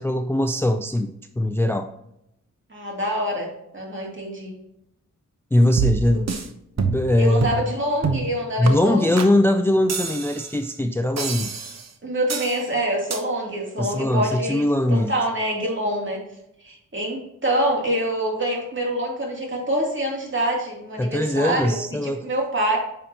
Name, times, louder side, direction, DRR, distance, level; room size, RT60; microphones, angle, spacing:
voice 1, 0.0-1.9 5.5-6.3 6.8-7.5 8.6-11.5 13.8-15.1 21.0-22.3, left 1 dB, 10° left, 7 dB, 0.4 m, -21 dB
voice 2, 2.7-4.6 7.2-9.2 12.0-16.2 16.6-22.8, right 1 dB, 40° right, -1 dB, 2.8 m, -26 dB
sound 1, 5.8-6.5 6.8-7.1 7.4-7.7 8.0-8.3 8.7-8.8 9.2-9.3 9.9-10.5 11.2-11.9 12.3-12.6 13.1-13.2, right 6 dB, 55° right, 1.0 m, -26 dB
9.3 x 5.7 x 2.9 m, 0.81 s
cardioid pair, 75°, 31 cm